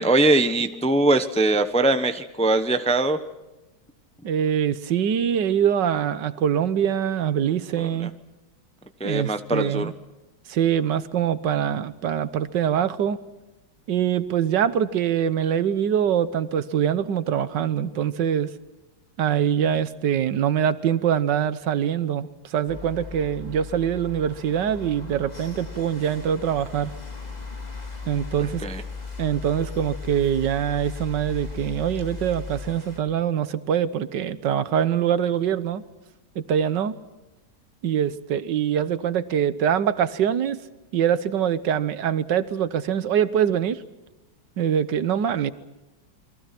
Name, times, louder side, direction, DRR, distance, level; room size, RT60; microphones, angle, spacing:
voice 1, 0.0-3.2 8.0-8.1 9.0-9.9 28.6-28.8, right 2 dB, 5° left, 9 dB, 0.7 m, -21 dB
voice 2, 4.2-8.1 9.0-9.9 10.5-13.2 13.9-18.5 19.2-26.9 28.1-28.6 29.2-35.8 36.4-37.0 37.8-40.6 40.9-43.8 44.6-45.5, right 9 dB, 75° right, 14 dB, 1.6 m, -24 dB
sound 1, 22.7-33.0, left 4 dB, 20° left, 3.1 m, -37 dB
28.5 x 22.5 x 5.9 m, 1.1 s
omnidirectional pair, 2.0 m